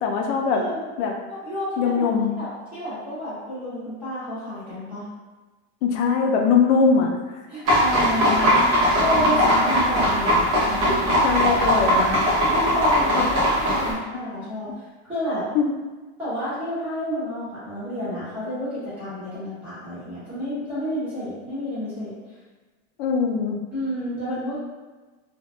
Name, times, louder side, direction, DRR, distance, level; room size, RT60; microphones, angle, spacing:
voice 1, 0.0-0.6 1.0-1.1 1.8-2.3 5.8-7.1 11.2-12.2 13.1-13.3 15.5-15.7 23.0-23.6, left 5 dB, 90° left, 2 dB, 0.5 m, -21 dB
voice 2, 0.5-0.8 1.3-2.1 2.4-5.0 7.5-10.8 12.5-15.5 16.2-22.2 23.7-24.6, left 1 dB, 5° right, -14 dB, 0.9 m, -30 dB
sound 1, 7.7-13.9, equal, 45° right, 0.8 m, -20 dB
2.5 x 2.1 x 2.3 m, 1.3 s
supercardioid pair, 175°, 33 cm